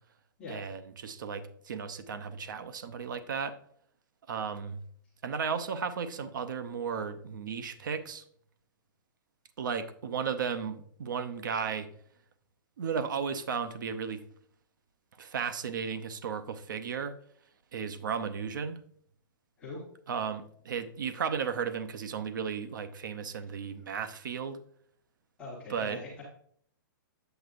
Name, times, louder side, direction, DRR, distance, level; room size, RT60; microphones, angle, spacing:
voice 1, 0.5-3.5 4.3-4.8 5.2-8.2 9.6-11.9 12.8-14.2 15.2-17.2 17.7-18.8 20.1-24.6 25.7-26.0, right 6 dB, 60° right, 12 dB, 0.7 m, -34 dB
voice 2, 25.4-26.2, left 2 dB, 10° left, -7 dB, 1.2 m, -42 dB
8.0 x 7.9 x 2.5 m, 0.62 s
hypercardioid pair, 175°, 12 cm